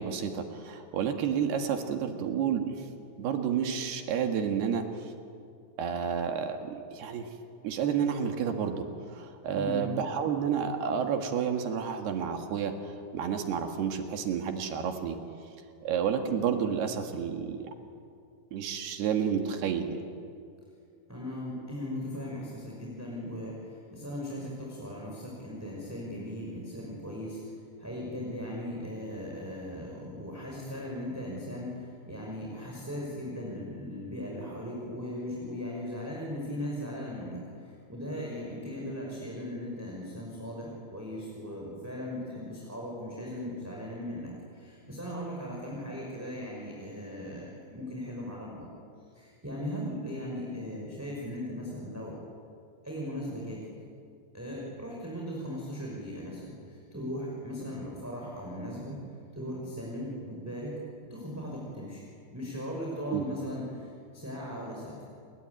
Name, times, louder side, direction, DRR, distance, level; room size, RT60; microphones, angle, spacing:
voice 1, 0.0-2.9 3.2-4.9 5.8-7.3 7.6-15.2 15.8-17.7 18.5-20.0 63.1-63.3, right 7 dB, 65° right, 5 dB, 3.5 m, -30 dB
voice 2, 9.5-9.9 21.1-27.4 27.8-48.7 49.1-52.1 52.8-53.6 54.3-59.0 59.3-60.7 61.1-62.0 62.3-65.0, equal, 5° right, -4 dB, 4.9 m, -38 dB
28.5 x 22.0 x 9.6 m, 2.3 s
omnidirectional pair, 5.2 m